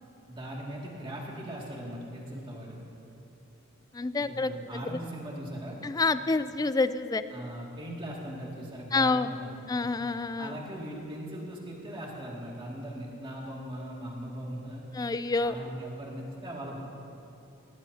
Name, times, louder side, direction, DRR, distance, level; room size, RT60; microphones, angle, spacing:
voice 1, 0.3-2.8 4.2-5.8 7.3-9.8 10.4-14.8 15.4-16.8, right 1 dB, 25° right, -3 dB, 2.3 m, -39 dB
voice 2, 3.9-5.0 5.8-7.2 8.9-9.3 9.7-10.6 14.9-15.5, left 3 dB, 20° left, 12 dB, 0.3 m, -28 dB
19.5 x 16.0 x 2.8 m, 2.8 s
head